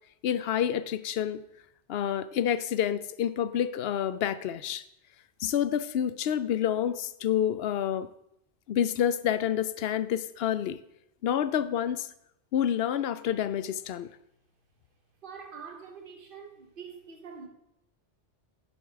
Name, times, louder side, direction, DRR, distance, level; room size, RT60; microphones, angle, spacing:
voice 1, 0.2-1.4 1.9-4.8 5.4-8.1 8.7-10.8 11.2-12.1 12.5-14.1, left 9 dB, 65° left, 0.7 m, -28 dB
voice 2, 15.2-17.5, right 6 dB, 55° right, 1.3 m, -45 dB
11.0 x 5.5 x 4.6 m
omnidirectional pair, 1.2 m